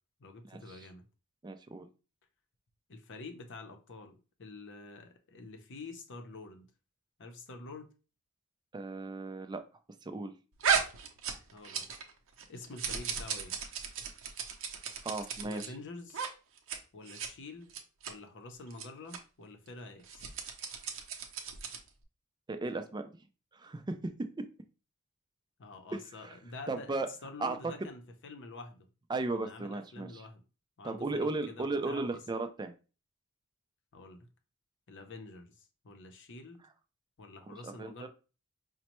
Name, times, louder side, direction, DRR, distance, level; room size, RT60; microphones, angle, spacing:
voice 1, 0.2-1.0 2.9-6.7 7.2-7.9 11.5-11.9 12.5-13.6 15.4-16.2 16.9-17.8 18.1-20.3 25.6-26.9 27.2-28.9 29.3-30.4 30.8-32.2 33.9-34.3 34.9-36.7 37.2-38.1, left 3 dB, 55° left, 0.7 m, -47 dB
voice 2, 1.4-1.9 8.7-9.6 10.0-10.3 15.0-15.7 22.5-23.0 23.5-24.0 25.9-26.4 26.7-27.1 27.4-27.7 29.1-30.2 30.8-32.7 37.6-37.9, right 3 dB, 20° right, 0.4 m, -35 dB
sound 1, 10.6-12.1 12.4-15.7 16.1-16.3 16.6-16.8 17.1-17.3 17.7-18.1 18.7-18.8 19.1-19.2 20.0-21.9, right 6 dB, 60° right, 0.6 m, -35 dB
5.1 x 2.1 x 2.9 m
head